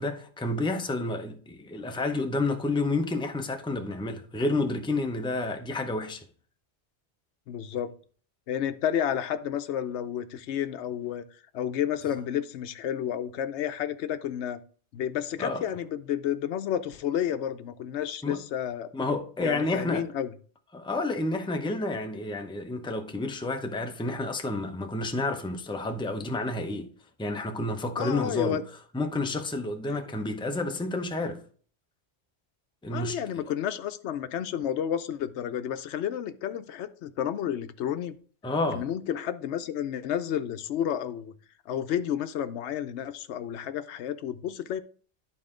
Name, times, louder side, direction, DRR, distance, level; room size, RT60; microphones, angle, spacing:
voice 1, 0.0-6.2 15.4-15.6 18.2-18.4 18.9-20.1 20.7-26.9 27.2-28.6 28.9-31.4 32.8-33.2 38.4-38.8, left 2 dB, 5° left, 0.6 m, -30 dB
voice 2, 7.5-7.9 8.5-11.2 11.5-14.6 14.9-18.9 19.4-20.3 28.0-28.6 29.9-30.1 32.9-38.1 38.7-41.3 41.7-44.8, left 9 dB, 80° left, 0.9 m, -31 dB
11.0 x 4.2 x 3.7 m
omnidirectional pair, 1.2 m